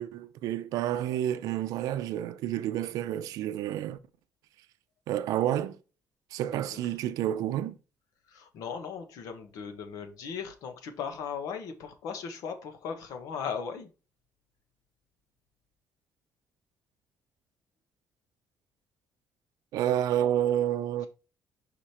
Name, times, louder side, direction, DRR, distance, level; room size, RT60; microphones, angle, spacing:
voice 1, 0.0-4.0 5.1-5.8 6.3-7.8 19.7-21.1, right 11 dB, 85° right, 0.5 m, -29 dB
voice 2, 8.3-13.9, left 6 dB, 80° left, 1.3 m, -37 dB
5.1 x 5.1 x 4.4 m
cardioid pair, 155°, 6 cm